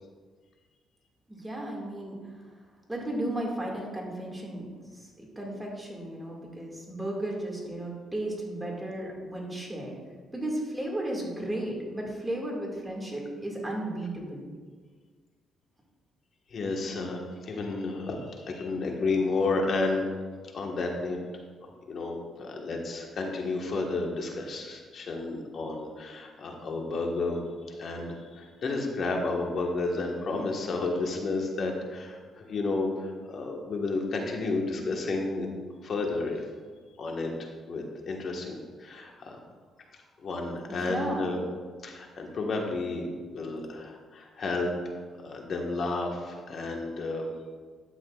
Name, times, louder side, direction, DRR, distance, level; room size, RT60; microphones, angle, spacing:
voice 1, 1.3-2.2 2.9-9.9 10.3-14.4 40.7-41.3, right 1 dB, 10° right, -2 dB, 2.2 m, -34 dB
voice 2, 16.5-20.1 20.5-21.2 21.6-27.4 27.7-35.5 35.8-36.4 37.0-39.4 40.2-41.4 41.8-43.0 43.3-44.7 45.2-47.3, left 3 dB, 55° left, 1 dB, 1.5 m, -31 dB
11.0 x 8.3 x 2.5 m, 1.5 s
cardioid pair, 90°, 0 cm